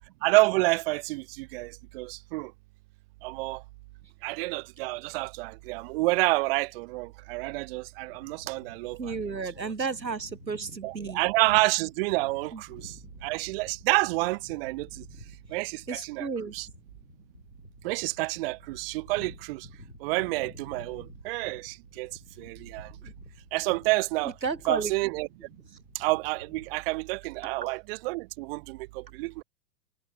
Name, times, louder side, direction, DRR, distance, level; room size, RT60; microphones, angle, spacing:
voice 1, 0.2-2.5 3.2-3.6 4.2-9.2 9.4-9.7 10.8-13.0 13.2-15.0 15.5-16.3 16.5-16.7 17.8-19.7 20.0-22.1 22.4-22.9 23.5-24.3 24.7-25.3 25.9-29.4, right 24 dB, 35° right, 0.7 m, -29 dB
sound 1, 8.1-26.7, left 1 dB, 90° left, 6.7 m, -51 dB
voice 2, 9.0-11.2 12.5-12.6 15.9-16.5 24.4-24.9, right 4 dB, 85° right, 1.4 m, -32 dB
figure-of-eight pair, 95°, 50 cm